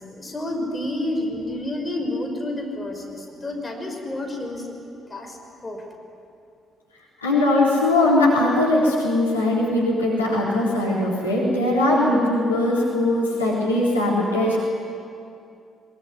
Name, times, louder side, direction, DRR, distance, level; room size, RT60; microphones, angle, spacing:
voice 1, 0.0-5.8, left 1 dB, 25° left, 2 dB, 5.6 m, -30 dB
voice 2, 7.2-14.6, left 1 dB, 85° left, -6 dB, 3.8 m, -20 dB
22.5 x 21.5 x 9.8 m, 2.5 s
figure-of-eight pair, 45°, 0 cm